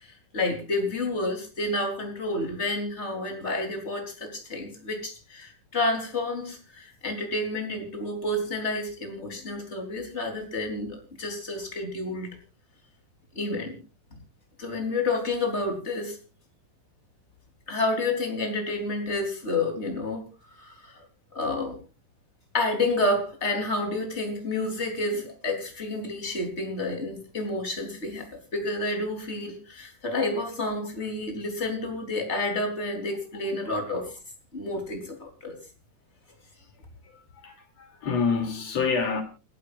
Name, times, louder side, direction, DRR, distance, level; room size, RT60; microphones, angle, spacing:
voice 1, 0.3-12.3 13.4-13.8 14.6-16.2 17.7-20.2 20.6-20.9 21.3-21.8 22.5-28.3 28.5-34.1 34.5-35.6, left 2 dB, 20° left, 3.7 m, -29 dB
voice 2, 37.0-39.2, left 5 dB, 50° left, 3.9 m, -28 dB
29.0 x 11.5 x 2.5 m
omnidirectional pair, 3.9 m